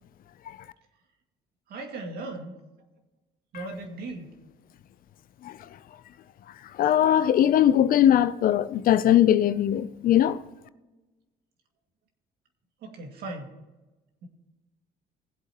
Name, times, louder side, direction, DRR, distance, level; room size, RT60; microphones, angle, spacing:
voice 1, 1.7-2.6 3.5-4.3 12.8-13.5 14.2-14.3, right 2 dB, 70° right, 2.2 m, -37 dB
voice 2, 6.7-10.4, left 11 dB, 60° left, 0.6 m, -20 dB
19.5 x 7.9 x 3.0 m
cardioid pair, 110°, 17 cm